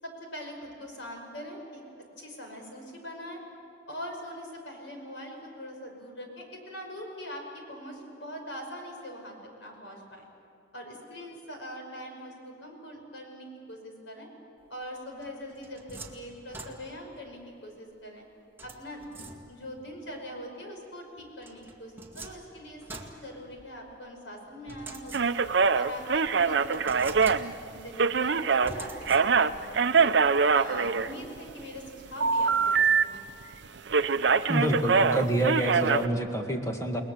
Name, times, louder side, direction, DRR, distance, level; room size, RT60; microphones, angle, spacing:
voice 1, 0.0-1.8 2.2-3.4 3.9-10.3 10.7-14.3 14.7-18.2 18.6-19.1 19.5-22.8 23.1-25.3 25.7-30.1 30.5-33.5, equal, 75° left, 2 dB, 5.5 m, -42 dB
sound 1, 15.2-17.2 18.6-19.8 21.4-23.9 24.7-25.7 26.1-26.2 26.7-27.8 28.6-29.6, right 3 dB, 10° right, 1.9 m, -45 dB
sound 2, 25.1-28.7 29.0-31.5 32.2-33.0 33.3-33.5 33.9-36.1, right 5 dB, 65° right, 0.6 m, -23 dB
voice 2, 34.5-37.0, right 1 dB, 15° left, 3 dB, 1.8 m, -27 dB
29.5 x 20.0 x 7.3 m, 2.6 s
head